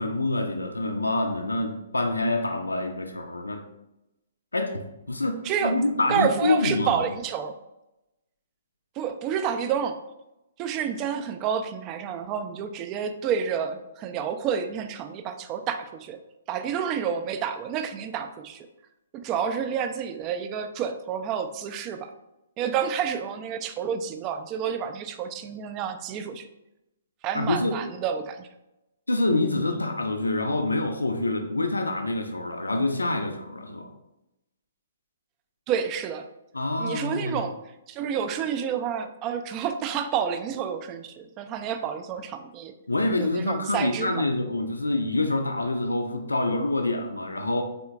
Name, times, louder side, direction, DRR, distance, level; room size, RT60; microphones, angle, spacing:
voice 1, 0.0-3.6 4.5-4.8 5.1-7.0 27.3-27.8 29.1-33.9 36.5-37.4 42.9-47.6, left 2 dB, 75° left, 6 dB, 0.4 m, -26 dB
voice 2, 6.1-7.5 9.0-10.0 10.6-16.2 16.5-18.7 19.1-22.1 22.6-26.5 27.2-28.5 35.7-36.3 36.8-37.6 37.9-42.7 43.2-44.3, right 8 dB, 25° right, 9 dB, 0.3 m, -29 dB
3.6 x 3.5 x 2.4 m, 0.91 s
figure-of-eight pair, 125°, 0 cm